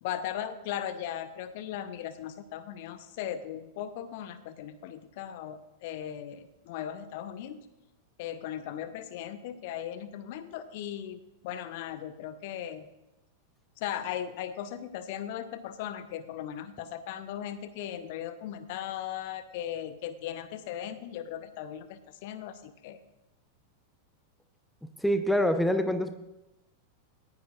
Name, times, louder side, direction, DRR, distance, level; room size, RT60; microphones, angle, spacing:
voice 1, 0.0-7.6 8.2-12.9 13.8-23.0, left 10 dB, 50° left, 13 dB, 0.7 m, -38 dB
voice 2, 25.0-26.2, equal, 5° left, 9 dB, 0.7 m, -25 dB
18.5 x 10.5 x 2.4 m, 0.95 s
figure-of-eight pair, 90°, 0 cm